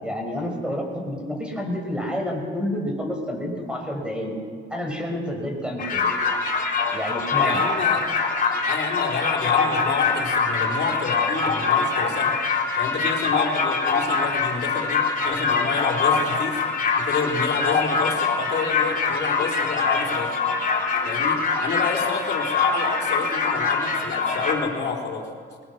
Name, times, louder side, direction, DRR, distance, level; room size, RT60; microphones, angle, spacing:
voice 1, 0.0-4.3 4.7-6.1 6.9-7.6, equal, 5° right, 1 dB, 5.8 m, -29 dB
sound 1, 5.8-24.5, left 4 dB, 45° left, 4.1 m, -23 dB
voice 2, 7.4-8.1 8.6-12.3 12.8-16.6 17.0-20.4 21.0-25.3, left 5 dB, 60° left, -2 dB, 4.2 m, -29 dB
21.0 x 20.5 x 6.3 m, 2.1 s
cardioid pair, 90°, 20 cm